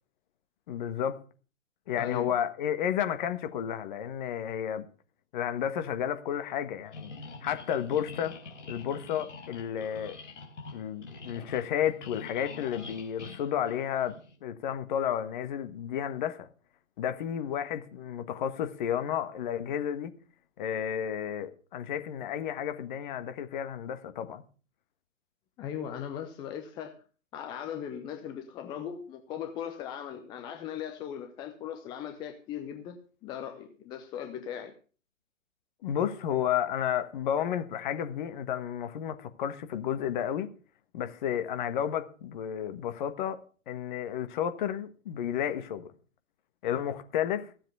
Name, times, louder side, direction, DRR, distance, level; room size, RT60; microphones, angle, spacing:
voice 1, 0.7-1.2 1.9-4.9 5.3-7.1 7.4-8.3 8.7-10.2 10.7-16.5 17.0-20.1 20.6-24.4 35.8-40.5 40.9-43.4 43.7-45.9 46.6-47.5, left 9 dB, 35° left, 1.5 m, -32 dB
voice 2, 2.0-2.3 25.6-27.0 27.3-34.7, left 9 dB, 10° left, 0.7 m, -38 dB
sound 1, 6.9-14.4, left 3 dB, 65° left, 3.9 m, -45 dB
15.5 x 7.6 x 6.8 m
figure-of-eight pair, 125°, 40 cm